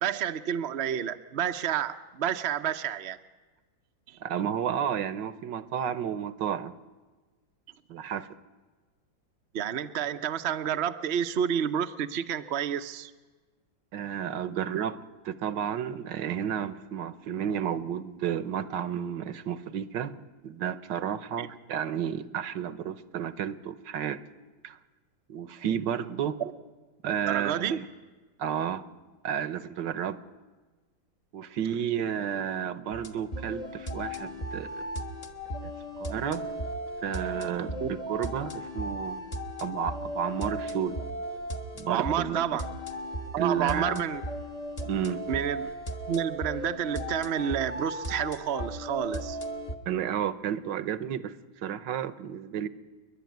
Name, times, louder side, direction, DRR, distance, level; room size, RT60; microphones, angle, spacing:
voice 1, 0.0-3.2 4.1-4.2 9.5-13.1 21.4-21.5 26.4-26.5 27.3-27.8 37.8-37.9 41.9-42.6 43.3-44.2 45.3-45.7 46.1-49.4, right 9 dB, 55° right, 8 dB, 0.7 m, -30 dB
voice 2, 4.2-6.8 7.9-8.3 13.9-20.2 20.4-24.2 24.6-24.8 25.3-26.4 27.0-27.9 28.4-28.8 29.2-30.2 31.3-34.9 35.6-35.7 36.0-36.5 37.0-39.2 39.6-41.0 41.7-42.5 43.4-44.0 44.9-45.2 49.9-52.7, right 9 dB, 70° right, 15 dB, 1.5 m, -32 dB
sound 1, 32.9-49.7, equal, 25° left, 0.9 m, -36 dB
29.5 x 11.0 x 9.3 m, 1.3 s
omnidirectional pair, 2.1 m